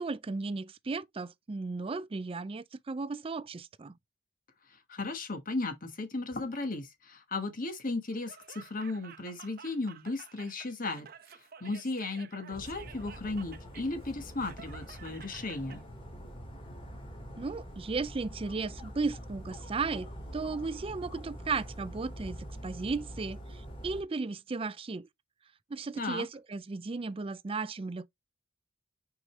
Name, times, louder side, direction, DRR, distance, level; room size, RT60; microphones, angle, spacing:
voice 1, 0.0-3.9 17.4-22.4 22.6-25.1 25.7-28.1, right 4 dB, 30° right, 0.4 m, -35 dB
voice 2, 4.7-15.8 25.9-26.3, left 3 dB, 45° left, 1.3 m, -36 dB
Laughter, 8.1-15.8, right 7 dB, 50° right, 0.8 m, -52 dB
Dog, 12.5-24.0, equal, 30° left, 2.4 m, -45 dB
6.2 x 4.9 x 3.1 m
head